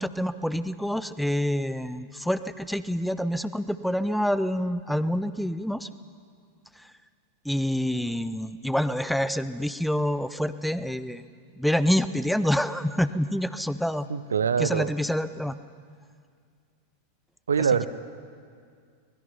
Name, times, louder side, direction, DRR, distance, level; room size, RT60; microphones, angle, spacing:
voice 1, 0.0-5.9 7.4-11.3 11.6-14.1 14.6-15.6, equal, ahead, 14 dB, 0.7 m, -27 dB
voice 2, 14.1-14.9 17.5-17.9, right 6 dB, 70° right, 13 dB, 0.9 m, -24 dB
25.0 x 20.5 x 5.6 m, 2.2 s
figure-of-eight pair, 90°, 0 cm